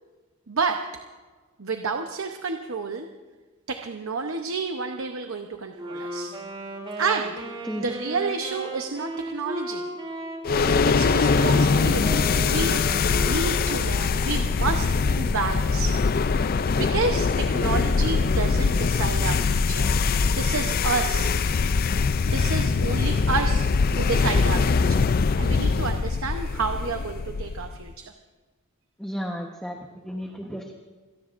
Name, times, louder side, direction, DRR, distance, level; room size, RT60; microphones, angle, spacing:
voice 1, 0.5-0.9 1.6-3.1 3.7-6.4 7.0-9.9 10.9-12.2 12.5-16.0 16.7-19.9 20.3-21.3 22.2-23.7 24.0-25.0 25.4-28.1, right 4 dB, 70° right, 5 dB, 0.8 m, -30 dB
Wind instrument woodwind instrument, 5.7-14.1, right 2 dB, 25° right, 3.0 m, -36 dB
sound 1, 10.4-27.8, left 4 dB, 45° left, 0.4 m, -22 dB
voice 2, 29.0-29.8 30.0-30.7, equal, 5° left, 1 dB, 1.0 m, -33 dB
27.5 x 17.5 x 2.6 m, 1.3 s
head